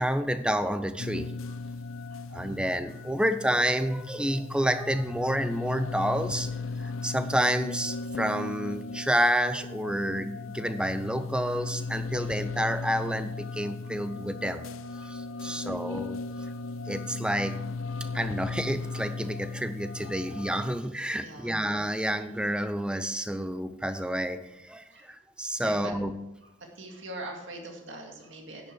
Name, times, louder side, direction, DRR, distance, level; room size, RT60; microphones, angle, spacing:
voice 1, 0.0-1.3 2.3-6.5 6.8-14.7 15.0-16.2 16.9-17.6 18.1-26.1, equal, 5° right, 10 dB, 0.5 m, -29 dB
sound 1, 1.0-20.8, left 3 dB, 90° left, 0.6 m, -37 dB
voice 2, 2.1-2.7 6.8-7.2 10.8-10.9 11.8-11.9 12.2-12.3 13.8-13.9 15.0-16.0 16.4-16.5 18.2-18.3 19.2-19.3 21.2-21.6 23.9-24.1 24.9-25.1 25.6-25.9 26.4-28.7, right 2 dB, 65° right, 2 dB, 2.1 m, -45 dB
10.5 x 9.5 x 4.6 m, 0.95 s
head